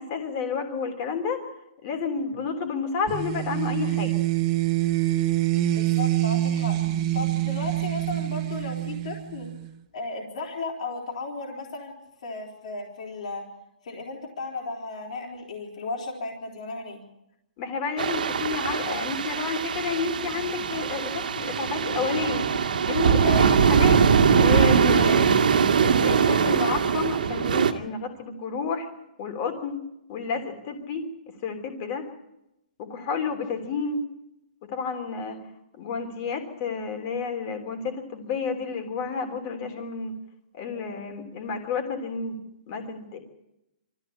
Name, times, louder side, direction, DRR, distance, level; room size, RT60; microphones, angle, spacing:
voice 1, 0.0-1.5 1.8-4.1 17.6-22.4 22.9-24.0 24.3-25.3 25.8-28.9 29.2-29.8 30.1-31.1 31.4-32.1 32.8-34.0 34.6-35.4 35.8-40.2 40.5-42.4 42.7-43.2, left 5 dB, 25° left, 6 dB, 3.3 m, -30 dB
sound 1, 3.1-9.7, right 15 dB, 20° right, 1.1 m, -26 dB
voice 2, 5.7-9.5 9.9-11.9 12.2-13.4 13.8-17.0 23.2-23.5 25.1-25.2, left 3 dB, 50° left, 0 dB, 3.9 m, -35 dB
sound 2, 18.0-27.7, right 6 dB, 70° right, 2.1 m, -22 dB
24.0 x 14.5 x 8.8 m, 0.88 s
hypercardioid pair, 175°, 5 cm